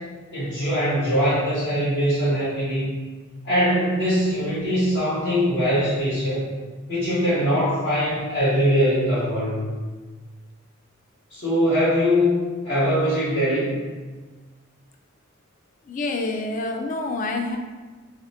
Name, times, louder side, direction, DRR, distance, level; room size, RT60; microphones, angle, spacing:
voice 1, 0.3-2.9 3.4-6.4 6.9-9.6 11.3-12.4 12.6-13.8, equal, 60° left, -14 dB, 1.1 m, -22 dB
voice 2, 15.9-17.6, left 2 dB, 40° left, 4 dB, 0.3 m, -27 dB
2.8 x 2.0 x 4.0 m, 1.3 s
head